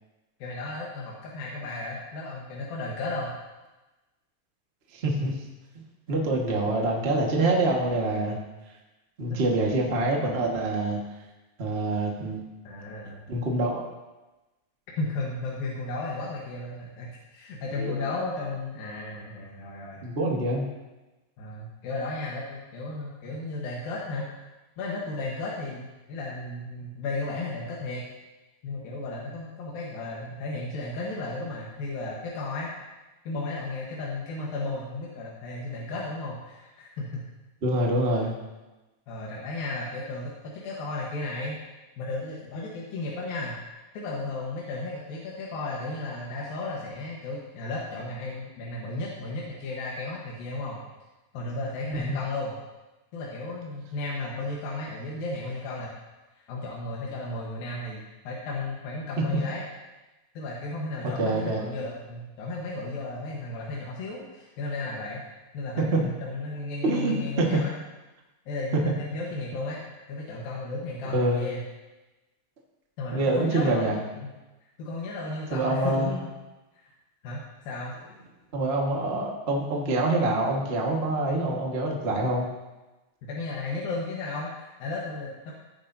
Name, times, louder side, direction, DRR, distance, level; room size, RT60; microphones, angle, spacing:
voice 1, 0.4-3.3 9.3-9.4 12.6-13.2 15.0-20.1 21.4-24.3 24.8-28.0 28.6-32.7 33.3-37.2 39.1-40.4 40.6-41.6 42.0-43.6 43.9-50.8 51.3-52.6 53.1-55.9 56.4-58.0 58.2-59.6 60.3-65.2 65.5-67.8 68.5-69.8 70.1-71.6 73.0-74.3 74.8-76.3 76.8-76.9 77.2-78.0 83.2-85.5, left 2 dB, 80° left, -4 dB, 3.2 m, -34 dB
voice 2, 4.9-5.3 6.1-8.4 9.2-11.0 11.6-12.4 13.3-13.8 17.8-18.1 20.0-20.6 37.6-38.3 52.1-52.2 61.0-61.6 65.9-66.0 66.8-67.6 71.1-71.4 73.1-74.0 75.5-76.2 78.5-82.5, right 2 dB, 40° right, -1 dB, 0.8 m, -25 dB
15.5 x 10.5 x 2.8 m, 1.1 s
omnidirectional pair, 4.1 m